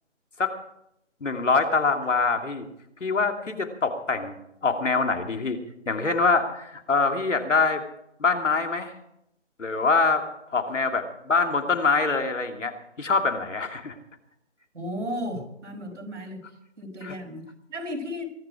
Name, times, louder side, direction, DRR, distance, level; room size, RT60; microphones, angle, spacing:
voice 1, 1.2-2.7 3.0-4.3 4.6-5.6 5.9-7.8 8.2-8.9 9.6-10.2 10.5-12.7 13.0-13.9 17.0-17.1, left 4 dB, 85° left, 4 dB, 2.8 m, -24 dB
voice 2, 14.7-16.4 16.8-18.3, left 1 dB, 80° right, 2 dB, 5.5 m, -34 dB
22.5 x 11.0 x 4.9 m, 0.78 s
figure-of-eight pair, 165°, 36 cm